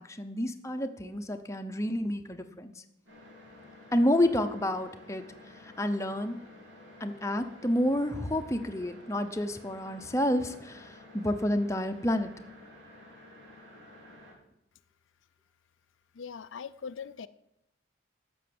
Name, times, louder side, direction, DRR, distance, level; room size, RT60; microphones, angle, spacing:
voice 1, 0.0-2.7 3.9-5.2 5.6-6.4 7.0-12.3, left 1 dB, 15° left, 7 dB, 0.7 m, -29 dB
sound 1, 3.1-14.3, left 1 dB, 80° right, 4.5 m, -52 dB
voice 2, 16.1-17.3, left 6 dB, 80° left, 14 dB, 0.4 m, -41 dB
12.0 x 7.0 x 7.7 m, 0.85 s
head